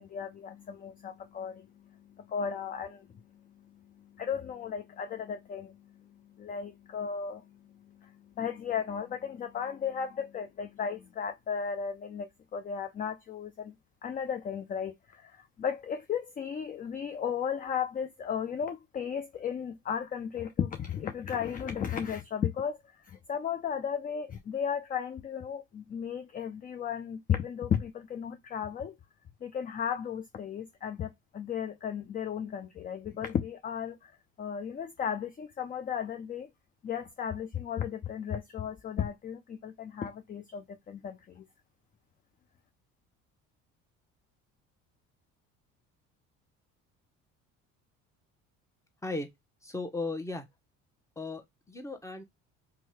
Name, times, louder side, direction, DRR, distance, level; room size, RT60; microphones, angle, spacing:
voice 1, 0.0-13.7 14.0-15.3 15.6-22.8 23.1-29.0 29.4-34.1 34.4-36.5 36.8-41.4, left 7 dB, 25° left, 0.4 m, -35 dB
voice 2, 49.6-50.5 51.2-52.2, left 2 dB, 10° left, 0.9 m, -36 dB
2.7 x 2.3 x 3.1 m
hypercardioid pair, 70°, 37 cm